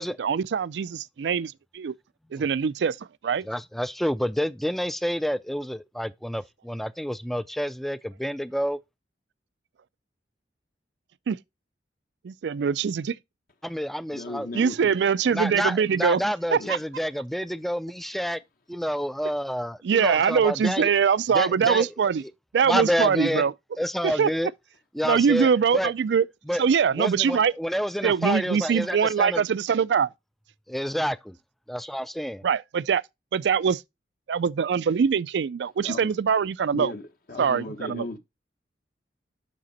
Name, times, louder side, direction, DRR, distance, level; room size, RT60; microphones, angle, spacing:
voice 1, 0.2-1.9 2.3-3.5 11.3-11.4 12.2-13.2 14.5-16.2 16.5-16.8 19.8-22.2 22.5-23.5 24.0-24.3 25.0-26.3 26.6-27.5 28.0-30.1 32.4-33.0 33.3-33.8 34.3-36.9 37.4-38.1, right 6 dB, 70° right, 0.4 m, -23 dB
voice 2, 3.5-8.8 13.6-14.6 15.3-18.4 18.7-20.9 21.3-21.9 22.7-23.4 23.8-24.5 25.0-25.5 25.7-25.9 26.5-26.6 27.0-29.4 30.7-31.3 31.7-32.4, equal, ahead, 0.4 m, -28 dB
voice 3, 14.1-14.7 16.6-16.7 35.8-36.0 36.7-37.0 37.3-38.2, left 2 dB, 55° left, 1.1 m, -35 dB
7.6 x 6.0 x 4.2 m
head